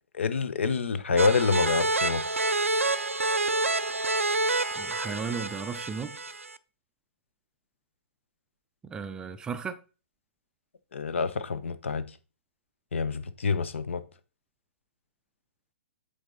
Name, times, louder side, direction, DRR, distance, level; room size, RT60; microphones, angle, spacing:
voice 1, 0.1-2.2 10.9-12.1 12.9-14.0, left 5 dB, 65° left, 0.7 m, -27 dB
sound 1, 1.2-6.6, right 2 dB, 85° right, 0.4 m, -28 dB
voice 2, 4.8-6.2 8.8-9.8, right 6 dB, 10° right, 0.4 m, -35 dB
7.9 x 4.0 x 4.0 m
figure-of-eight pair, 120°, 7 cm